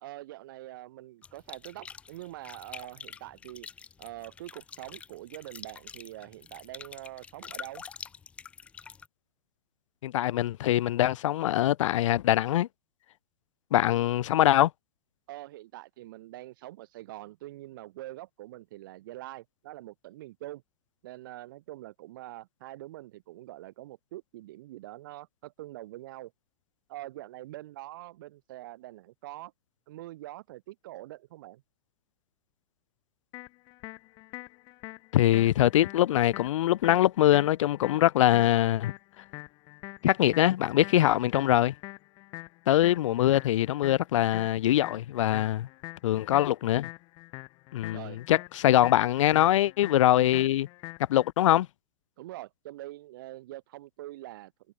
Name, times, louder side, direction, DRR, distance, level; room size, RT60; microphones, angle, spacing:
voice 1, 0.0-3.7 4.0-7.8 15.3-20.6 21.0-26.3 26.9-29.5 29.9-31.6 47.9-48.2 52.2-54.5, right 16 dB, 45° right, 1.0 m, -44 dB
sound 1, 1.2-9.1, left 6 dB, 10° left, 0.6 m, -46 dB
voice 2, 10.0-12.7 13.7-14.7 35.1-38.9 40.0-41.7 42.7-45.7 46.0-46.9 47.7-50.7 51.1-51.7, left 13 dB, 80° left, 0.4 m, -23 dB
sound 2, 33.3-51.3, left 23 dB, 25° left, 3.5 m, -45 dB
supercardioid pair, 180°, 16 cm